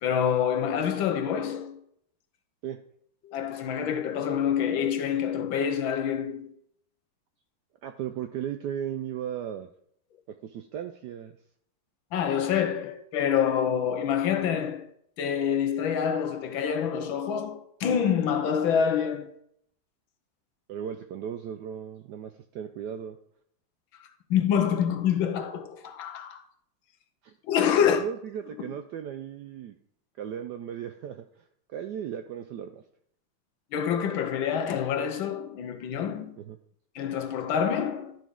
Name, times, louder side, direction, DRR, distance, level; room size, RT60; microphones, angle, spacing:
voice 1, 0.0-1.8 3.2-6.5 12.1-14.9 15.2-19.3 24.3-26.4 27.5-28.0 33.7-36.3 36.9-38.2, left 8 dB, 75° left, 1.6 m, -26 dB
voice 2, 7.8-9.7 10.3-11.4 20.7-23.2 27.2-27.3 27.8-29.8 30.2-32.8 36.4-36.6, right 9 dB, 75° right, 0.9 m, -36 dB
12.0 x 5.2 x 3.7 m
omnidirectional pair, 2.3 m